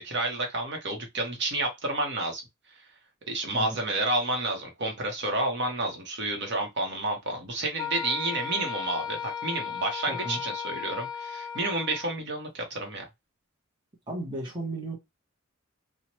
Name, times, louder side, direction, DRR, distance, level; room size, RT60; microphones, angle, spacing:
voice 1, 0.0-2.4 3.3-13.0, right 2 dB, 55° right, 0.8 m, -30 dB
Wind instrument woodwind instrument, 7.8-12.2, left 7 dB, 20° left, 0.3 m, -35 dB
voice 2, 10.1-10.4 14.1-15.0, right 2 dB, 20° right, 0.7 m, -34 dB
2.9 x 2.1 x 2.9 m
head